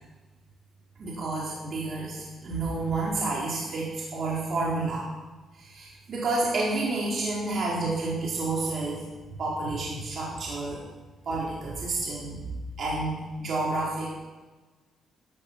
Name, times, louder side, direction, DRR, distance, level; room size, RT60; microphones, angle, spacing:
voice 1, 1.0-5.0 5.5-10.8 11.2-12.4 12.8-14.1, right 2 dB, 55° right, -4 dB, 4.3 m, -30 dB
16.0 x 13.5 x 6.0 m, 1.3 s
cardioid pair, 90°, 0 cm